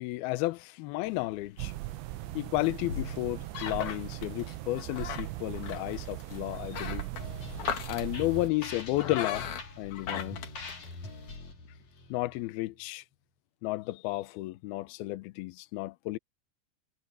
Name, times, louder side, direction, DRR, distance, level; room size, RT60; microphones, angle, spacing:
voice 1, 0.0-1.7 2.3-7.1 7.9-9.5 9.8-10.4 12.1-13.0 13.6-16.2, left 19 dB, 80° left, 2.2 m, -32 dB
sound 1, 1.1-11.4, left 8 dB, 55° left, 2.6 m, -40 dB
sound 2, 1.6-8.5, right 20 dB, 85° right, 2.6 m, -39 dB
sound 3, 7.2-12.8, left 2 dB, 40° left, 4.8 m, -43 dB
omnidirectional pair, 5.3 m